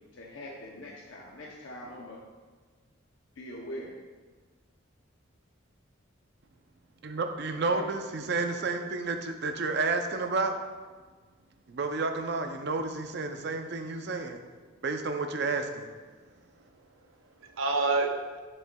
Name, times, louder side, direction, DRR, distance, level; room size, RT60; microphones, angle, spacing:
voice 1, 0.1-2.2 3.4-3.9 7.6-7.9, left 1 dB, 75° left, -3 dB, 0.7 m, -42 dB
voice 2, 7.0-10.6 11.7-14.4 14.8-15.9, right 3 dB, 55° right, 6 dB, 0.5 m, -31 dB
voice 3, 16.2-18.4, right 3 dB, 90° right, 3 dB, 0.7 m, -31 dB
7.5 x 6.4 x 2.3 m, 1.4 s
head